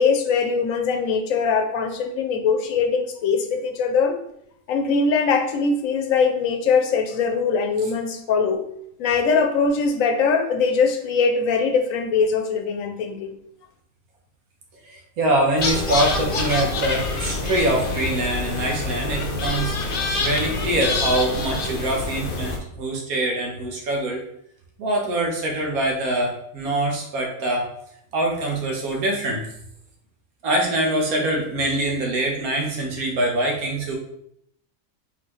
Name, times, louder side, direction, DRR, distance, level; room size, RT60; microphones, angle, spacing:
voice 1, 0.0-4.2 4.7-8.6 9.0-13.3, left 5 dB, 75° left, 6 dB, 1.0 m, -21 dB
voice 2, 14.8-19.7 20.2-24.2 24.8-27.7 28.1-29.5 30.4-33.9, right 1 dB, 85° right, 0 dB, 1.5 m, -24 dB
sound 1, 15.6-22.6, left 3 dB, 50° left, 0.8 m, -26 dB
4.2 x 3.9 x 3.1 m, 0.73 s
omnidirectional pair, 1.5 m